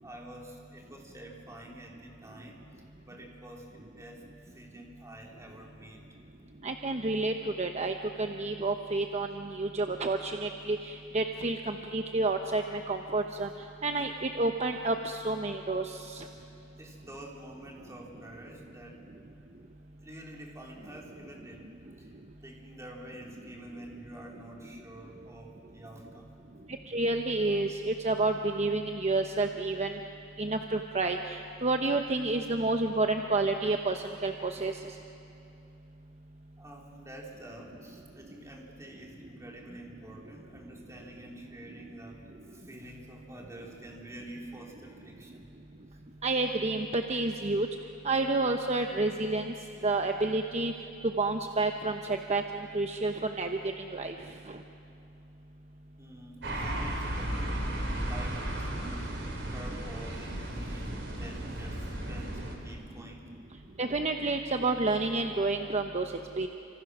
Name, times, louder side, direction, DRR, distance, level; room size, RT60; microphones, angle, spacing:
voice 1, 0.0-2.6 3.0-6.1 16.3-16.5 16.8-19.0 20.0-21.7 22.0-22.1 22.4-26.3 36.6-45.5 56.0-60.9 61.2-63.2, right 1 dB, 15° right, -1 dB, 3.3 m, -48 dB
voice 2, 6.6-13.5 13.8-16.2 26.9-30.0 30.4-34.7 46.2-47.7 48.0-49.5 49.8-50.7 51.2-52.4 52.7-53.6 53.9-54.1 63.8-66.0 66.4-66.5, right 2 dB, 35° right, 5 dB, 0.9 m, -29 dB
sound 1, 56.4-62.5, right 1 dB, 65° right, 3.9 m, -35 dB
29.5 x 26.0 x 6.1 m, 2.7 s
head